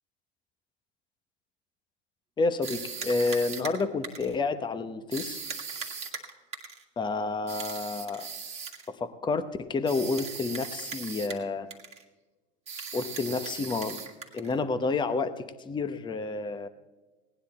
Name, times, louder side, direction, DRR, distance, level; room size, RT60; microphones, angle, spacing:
voice 1, 2.4-5.5 7.0-8.3 8.9-11.7 12.9-14.0 14.3-16.7, left 3 dB, 15° left, 10 dB, 0.9 m, -30 dB
sound 1, 2.6-4.4 5.1-6.8 7.5-8.9 9.9-11.5 11.7-12.0 12.7-14.6, right 5 dB, 20° right, 1.9 m, -39 dB
18.0 x 10.0 x 4.3 m, 1.2 s
hypercardioid pair, 105°, 33 cm